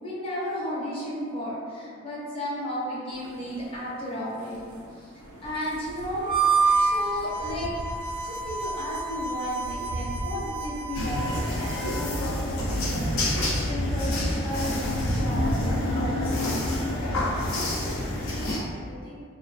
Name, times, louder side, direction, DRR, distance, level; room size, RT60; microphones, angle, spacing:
voice 1, 0.0-4.6 5.0-5.1 5.4-7.7 8.2-13.1 13.7-16.6 17.7-18.0, left 1 dB, 25° left, -8 dB, 0.5 m, -34 dB
sound 1, 3.1-15.5, right 1 dB, 90° right, 0.4 m, -38 dB
voice 2, 4.6-5.0 17.7-19.1, left 1 dB, 45° left, -9 dB, 0.9 m, -48 dB
Harmonica, 6.2-11.8, right 4 dB, 25° right, 0.4 m, -28 dB
sound 2, 10.9-18.6, left 1 dB, 80° left, 0.5 m, -28 dB
2.4 x 2.1 x 2.4 m, 2.1 s
head